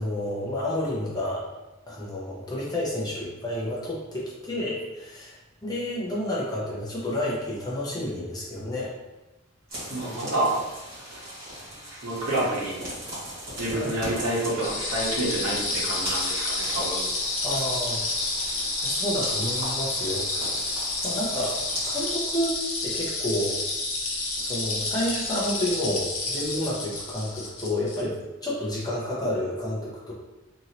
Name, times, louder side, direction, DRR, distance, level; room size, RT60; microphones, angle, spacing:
voice 1, 0.0-1.5 1.9-8.9 13.7-14.0 17.4-18.0 18.8-20.5 21.0-21.6 21.9-22.6 22.8-23.6 24.4-28.2 28.4-30.1, left 1 dB, 20° left, -5 dB, 0.6 m, -30 dB
sound 1, 9.7-22.1, equal, 45° right, 1.5 m, -38 dB
voice 2, 9.9-10.6 11.9-12.7 13.5-17.1, right 1 dB, 85° right, -5 dB, 1.0 m, -28 dB
sound 2, 14.6-28.0, left 2 dB, 80° left, 0.7 m, -29 dB
2.8 x 2.7 x 2.8 m, 1.1 s
head